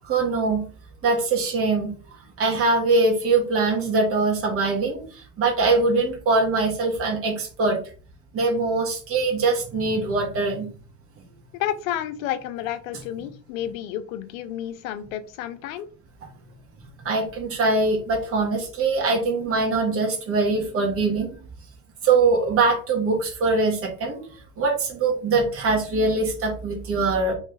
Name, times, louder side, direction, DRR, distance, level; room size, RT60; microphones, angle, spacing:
voice 1, 0.0-0.7 1.0-1.9 2.4-7.8 8.3-10.7 17.0-21.3 22.0-24.2 24.6-27.3, right 3 dB, 30° right, -1 dB, 1.5 m, -22 dB
voice 2, 11.6-15.9, left 11 dB, 65° left, 11 dB, 0.7 m, -30 dB
3.3 x 3.2 x 3.2 m, 0.40 s
hypercardioid pair, 105°, 43 cm